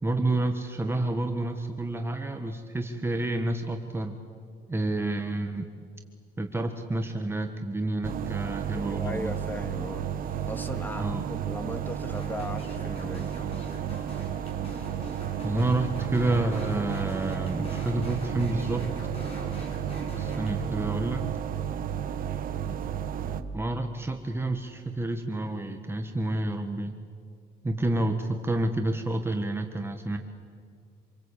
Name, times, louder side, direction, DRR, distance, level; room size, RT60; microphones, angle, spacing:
voice 1, 0.0-4.2 4.7-5.7 6.4-9.3 11.0-11.2 15.4-18.9 20.1-21.2 23.5-26.9 27.6-30.2, right 2 dB, 15° right, 4 dB, 1.5 m, -29 dB
sound 1, 8.0-23.4, right 9 dB, 55° right, 1.3 m, -32 dB
voice 2, 8.7-13.3, left 1 dB, 10° left, 8 dB, 2.1 m, -38 dB
sound 2, 12.1-20.5, left 1 dB, 35° left, 6.4 m, -43 dB
27.0 x 22.5 x 8.4 m, 2.3 s
cardioid pair, 110°, 17 cm